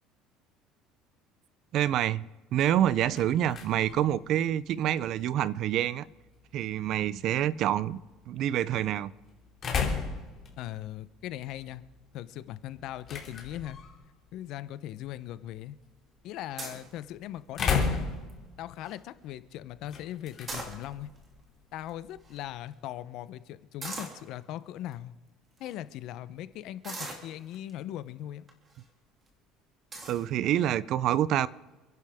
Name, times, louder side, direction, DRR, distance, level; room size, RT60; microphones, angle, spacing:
voice 1, 1.7-2.2 2.5-6.0 6.5-8.0 8.3-9.1 30.1-31.5, right 11 dB, 50° right, 0.5 m, -27 dB
sound 1, 2.7-22.6, left 5 dB, 30° left, 2.8 m, -38 dB
voice 2, 10.6-11.8 12.1-13.8 14.3-15.8 16.2-18.0 18.6-21.1 21.7-25.1 25.6-28.5, left 12 dB, 55° left, 0.7 m, -39 dB
sound 2, 16.6-16.9 17.5-17.9 18.3-18.4 18.6-19.0 20.3-21.2 21.9-22.0 22.2-22.4 23.8-24.2 24.9-25.0 25.6-25.8 26.8-27.7 28.5-28.8 29.3-29.4 29.9-30.2, right 2 dB, 25° right, 2.4 m, -40 dB
28.5 x 11.0 x 3.6 m
cardioid pair, 160°, 0 cm